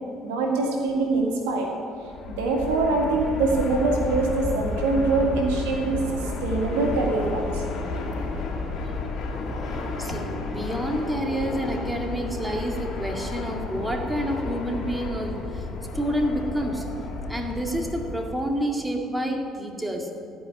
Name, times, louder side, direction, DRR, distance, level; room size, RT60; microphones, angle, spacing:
voice 1, 0.2-1.7 2.3-7.6, right 3 dB, 85° right, 1 dB, 2.0 m, -24 dB
Fixed-wing aircraft airplane, 2.0-18.4, left 3 dB, 60° left, 2.6 m, -32 dB
voice 2, 10.0-15.7 15.9-16.9 17.3-20.1, equal, 10° right, 2 dB, 2.1 m, -28 dB
16.0 x 5.5 x 9.7 m, 2.4 s
hypercardioid pair, 65°, 0 cm